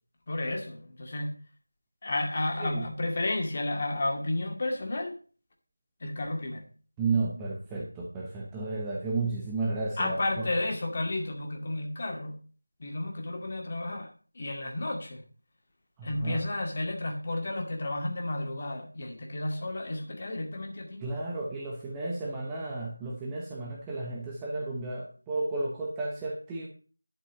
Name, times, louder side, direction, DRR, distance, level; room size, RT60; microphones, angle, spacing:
voice 1, 0.3-1.4 2.0-5.2 6.0-6.7 10.0-12.4 12.8-15.2 16.0-21.0, left 2 dB, 30° left, 2 dB, 2.3 m, -32 dB
voice 2, 7.0-10.5 16.0-16.4 21.0-26.7, right 3 dB, 5° right, -3 dB, 1.0 m, -33 dB
11.5 x 5.6 x 7.2 m, 0.39 s
figure-of-eight pair, 170°, 0 cm